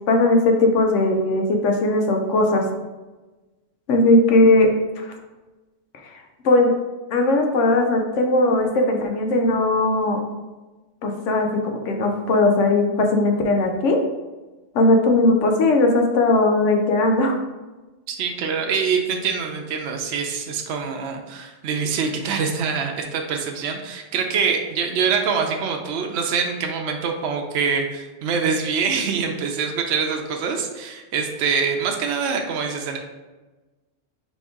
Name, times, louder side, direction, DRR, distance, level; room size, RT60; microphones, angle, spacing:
voice 1, 0.1-2.6 3.9-4.7 5.0-5.1 6.4-6.7 7.1-10.2 11.0-14.0 14.7-17.4, left 2 dB, 80° left, 3 dB, 1.0 m, -18 dB
voice 2, 18.1-33.0, right 5 dB, 70° right, 2 dB, 0.8 m, -24 dB
4.1 x 3.2 x 3.6 m, 1.2 s
omnidirectional pair, 1.3 m